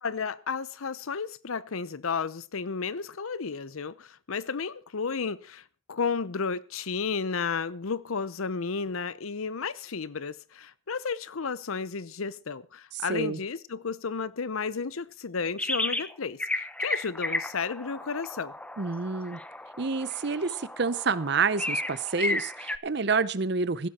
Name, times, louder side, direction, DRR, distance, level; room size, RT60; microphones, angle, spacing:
voice 1, 0.0-5.6 5.9-18.5, left 5 dB, 85° left, 0.7 m, -32 dB
voice 2, 12.9-13.4 18.8-19.4 19.8-23.9, right 4 dB, 50° right, 0.7 m, -28 dB
sound 1, 15.6-16.1 16.4-22.8, left 1 dB, 5° left, 0.6 m, -33 dB
15.5 x 12.5 x 4.3 m
head